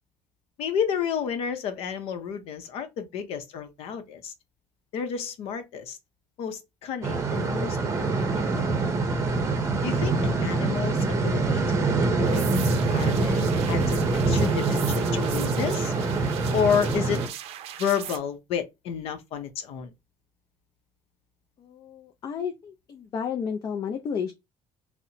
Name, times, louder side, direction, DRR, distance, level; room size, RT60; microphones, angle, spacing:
voice 1, 0.6-4.3 4.9-6.0 6.4-8.6 9.8-15.9 16.5-17.2 17.8-19.9, left 7 dB, 70° left, 0.7 m, -31 dB
sound 1, 7.0-17.3, right 3 dB, 30° right, 0.7 m, -25 dB
sound 2, 12.2-18.2, right 11 dB, 70° right, 0.5 m, -39 dB
voice 2, 21.6-24.3, left 7 dB, 40° left, 0.4 m, -32 dB
4.1 x 2.1 x 2.8 m
cardioid pair, 150°, 11 cm